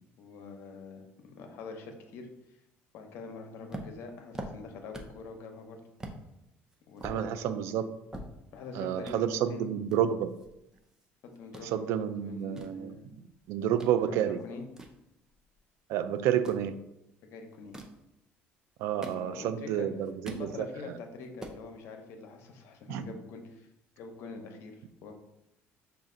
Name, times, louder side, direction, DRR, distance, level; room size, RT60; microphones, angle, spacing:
voice 1, 0.2-2.3 2.9-5.8 6.9-7.5 8.5-9.7 11.2-13.1 14.0-14.7 17.3-17.8 19.0-19.9 20.3-23.7 24.0-25.1, left 4 dB, 70° left, 4 dB, 0.8 m, -45 dB
sound 1, 3.7-5.3 5.6-5.7 6.0-6.2 6.7-8.7 9.0-9.2 9.9-11.1 11.3-11.7 12.3-14.0 14.4-15.7 16.3-16.7 17.5-18.0 18.7-19.6 19.9-20.5 20.9-21.0 21.2-21.6, right 1 dB, 15° right, 0.6 m, -44 dB
voice 2, 7.0-7.9 8.8-10.3 11.7-13.0 13.5-14.4 15.9-16.7 18.8-20.7 22.9-23.1, right 10 dB, 75° right, 12 dB, 0.3 m, -30 dB
5.6 x 2.4 x 3.8 m, 0.87 s
cardioid pair, 110°, 5 cm